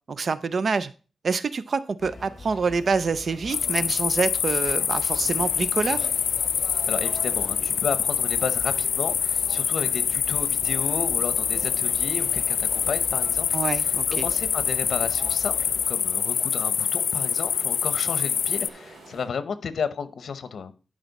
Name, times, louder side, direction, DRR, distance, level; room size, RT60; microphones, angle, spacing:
voice 1, 0.1-0.9 1.2-6.1 13.5-14.2, right 4 dB, 45° right, 0.4 m, -26 dB
sound 1, 2.0-16.0, left 3 dB, 30° left, 1.9 m, -43 dB
sound 2, 3.5-18.7, left 7 dB, 80° left, 0.4 m, -25 dB
sound 3, 4.9-19.3, right 2 dB, 85° right, 3.9 m, -48 dB
voice 2, 6.9-13.5 13.7-20.7, left 6 dB, 65° left, 0.8 m, -33 dB
11.5 x 5.0 x 4.0 m
wide cardioid pair, 165°, 0 cm